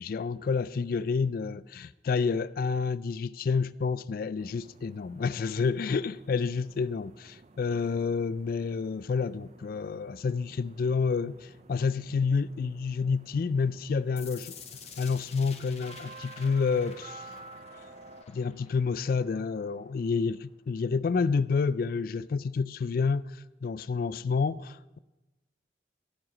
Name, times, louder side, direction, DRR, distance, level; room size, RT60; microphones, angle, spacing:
voice 1, 0.0-14.5 15.0-17.3 18.3-25.0, left 5 dB, 55° left, 0.3 m, -29 dB
sound 1, 4.4-18.2, right 3 dB, 40° right, 0.5 m, -52 dB
sound 2, 14.2-20.1, left 6 dB, 35° left, 1.4 m, -50 dB
17.0 x 7.9 x 5.0 m
head